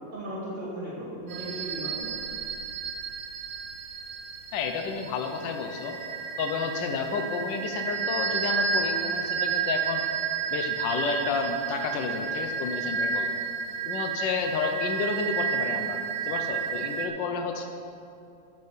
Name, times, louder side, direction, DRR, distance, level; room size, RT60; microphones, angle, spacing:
voice 1, 0.1-2.1, right 1 dB, 25° right, -7 dB, 1.9 m, -36 dB
sound 1, 1.3-17.1, right 6 dB, 70° right, 1.5 m, -31 dB
voice 2, 4.5-6.0 6.4-10.0 10.5-13.3 13.9-17.6, left 5 dB, 75° left, 5 dB, 1.4 m, -31 dB
8.7 x 6.6 x 7.2 m, 2.6 s
omnidirectional pair, 2.1 m